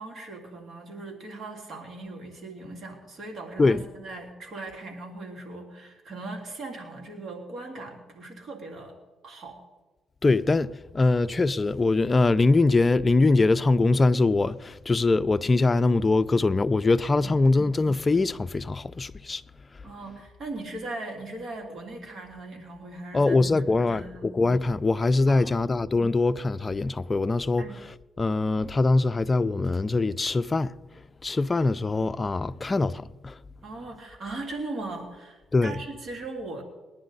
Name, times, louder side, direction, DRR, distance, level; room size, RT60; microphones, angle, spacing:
voice 1, 0.0-8.9 9.2-9.6 19.8-23.4 23.8-24.3 25.3-25.7 27.6-27.8 33.6-36.6, right 2 dB, 55° right, 2.9 m, -39 dB
voice 2, 10.2-19.4 23.1-27.7 28.2-30.7 31.2-33.4 35.5-35.8, left 3 dB, 25° left, 0.5 m, -23 dB
21.0 x 10.5 x 4.0 m
cardioid pair, 90°, 0 cm